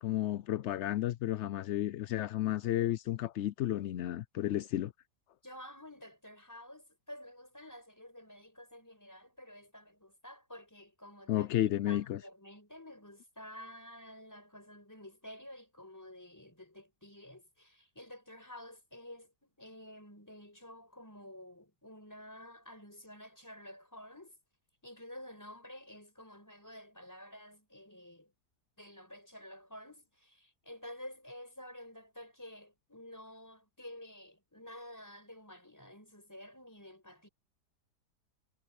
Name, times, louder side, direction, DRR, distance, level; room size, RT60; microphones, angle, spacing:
voice 1, 0.0-4.9 11.3-12.2, left 13 dB, 75° left, 0.6 m, -32 dB
voice 2, 5.4-11.5 11.9-24.4 24.8-28.3 28.8-37.3, left 1 dB, 10° left, 5.3 m, -51 dB
omnidirectional pair, 1.8 m